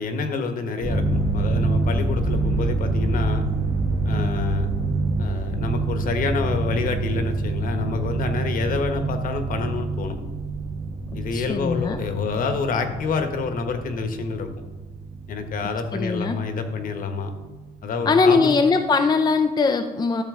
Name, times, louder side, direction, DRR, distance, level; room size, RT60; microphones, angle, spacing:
voice 1, 0.0-3.4 4.0-4.7 5.2-10.2 11.1-14.5 15.3-17.3 17.8-18.5, left 4 dB, 55° left, 7 dB, 1.2 m, -27 dB
sound 1, 0.8-16.8, right 3 dB, 55° right, 2.2 m, -26 dB
voice 2, 11.3-12.0 15.9-16.4 18.1-20.2, left 4 dB, 25° left, 7 dB, 0.5 m, -20 dB
12.5 x 6.6 x 3.7 m, 1.2 s
cardioid pair, 110°, 17 cm